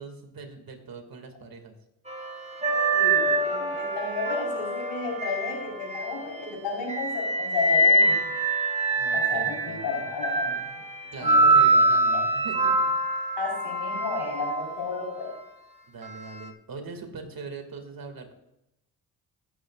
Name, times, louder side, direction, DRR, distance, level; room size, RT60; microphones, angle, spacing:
voice 1, 0.0-1.8 9.0-10.0 11.1-12.9 15.9-18.3, right 4 dB, 55° right, 5 dB, 2.4 m, -41 dB
sound 1, 2.1-6.4 6.9-15.0 16.0-16.3, right 2 dB, 15° right, 1.6 m, -25 dB
voice 2, 2.9-8.2 9.1-10.8 11.2-11.5 12.1-12.2 13.4-15.3, left 4 dB, 80° left, -2 dB, 4.6 m, -33 dB
17.0 x 9.5 x 2.5 m, 0.88 s
cardioid pair, 65°, 41 cm